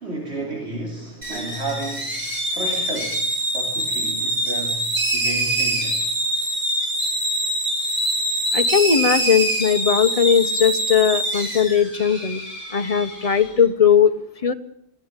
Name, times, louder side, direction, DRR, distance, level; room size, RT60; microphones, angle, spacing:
voice 1, 0.0-4.8 5.1-6.0, right 2 dB, 70° right, 0 dB, 3.5 m, -32 dB
sound 1, 1.2-13.5, right 1 dB, 45° right, 6.4 m, -24 dB
voice 2, 8.5-12.4 12.7-14.1 14.4-14.5, left 7 dB, 35° left, 9 dB, 1.1 m, -18 dB
23.0 x 15.5 x 9.1 m, 0.74 s
omnidirectional pair, 1.2 m